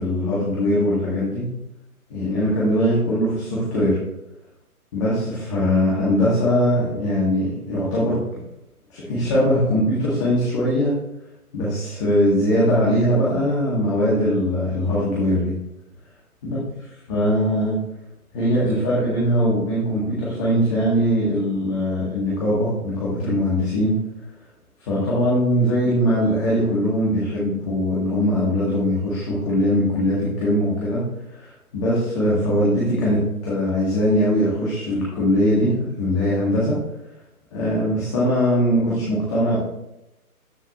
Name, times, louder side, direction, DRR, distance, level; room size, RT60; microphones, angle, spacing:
voice 1, 0.0-1.5 2.1-4.0 4.9-8.2 8.9-11.0 11.5-15.6 16.4-16.6 17.1-17.8 18.3-24.0 24.9-36.8 37.5-39.6, equal, 20° left, -8 dB, 1.9 m, -21 dB
13.0 x 5.4 x 3.1 m, 0.90 s
figure-of-eight pair, 140°, 45 cm